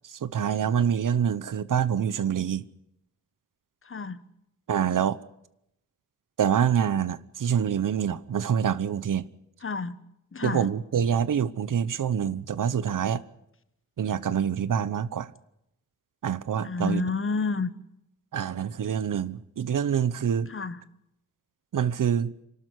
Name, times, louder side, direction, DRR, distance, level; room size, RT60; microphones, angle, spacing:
voice 1, 0.1-2.6 4.7-5.2 6.4-9.2 10.4-13.2 14.0-15.3 16.2-17.0 18.3-20.5 21.7-22.3, right 8 dB, 80° right, 1.0 m, -26 dB
voice 2, 3.8-4.2 9.6-10.0 10.3-10.7 16.6-17.7 20.5-20.8, left 4 dB, 40° left, 1.2 m, -29 dB
27.0 x 12.5 x 9.5 m
wide cardioid pair, 95°, 32 cm